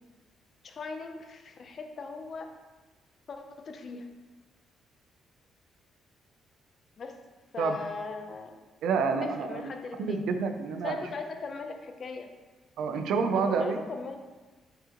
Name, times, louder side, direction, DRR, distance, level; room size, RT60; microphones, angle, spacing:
voice 1, 0.6-2.5 3.3-4.1 7.0-7.2 7.5-8.6 9.0-10.3 10.8-12.3 13.3-14.2, left 4 dB, 40° left, 5 dB, 0.6 m, -39 dB
voice 2, 8.8-9.6 10.1-11.0 12.8-13.8, right 5 dB, 75° right, 7 dB, 0.5 m, -28 dB
6.3 x 5.3 x 3.0 m, 1.3 s
cardioid pair, 150°, 0 cm